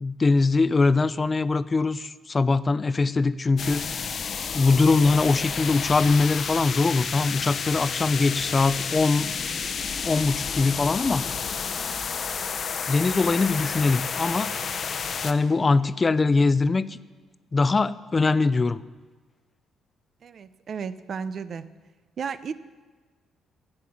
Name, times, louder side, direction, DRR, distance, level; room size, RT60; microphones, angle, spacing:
voice 1, 0.0-3.9 4.5-9.3 10.0-11.3 12.9-14.5 15.2-17.0 17.5-18.8, left 3 dB, 30° left, 16 dB, 0.4 m, -22 dB
sound 1, 3.6-15.3, left 6 dB, 50° left, 0.8 m, -30 dB
voice 2, 20.2-21.7 22.2-22.5, right 6 dB, 55° right, 14 dB, 0.6 m, -33 dB
12.0 x 7.8 x 7.2 m, 1.4 s
cardioid pair, 90°, 0 cm